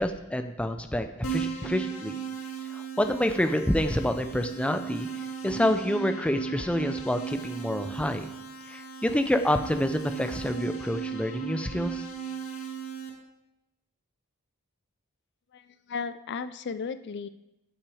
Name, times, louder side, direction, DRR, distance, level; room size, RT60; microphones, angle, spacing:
voice 1, 0.0-2.2 2.7-8.3 8.7-12.1, left 1 dB, 5° left, 7 dB, 0.6 m, -28 dB
Keyboard (musical), 1.2-13.1, right 7 dB, 65° left, 2.1 m, -36 dB
voice 2, 15.5-17.3, left 5 dB, 50° left, 13 dB, 0.4 m, -35 dB
15.5 x 6.1 x 4.9 m, 0.91 s
head